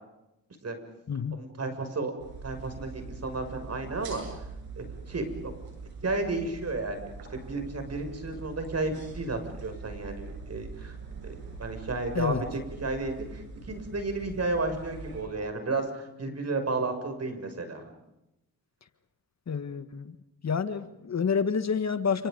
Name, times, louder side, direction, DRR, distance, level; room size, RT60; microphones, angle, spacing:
voice 1, 1.3-2.1 2.4-4.2 4.8-5.5 6.0-10.9 11.2-17.9, right 3 dB, 45° right, 7 dB, 6.7 m, -33 dB
sound 1, 2.2-15.2, right 4 dB, 85° right, 7.9 m, -43 dB
voice 2, 19.5-20.2 20.4-22.3, left 6 dB, 45° left, 11 dB, 1.6 m, -28 dB
29.0 x 28.0 x 5.4 m, 0.92 s
supercardioid pair, 55°, 36 cm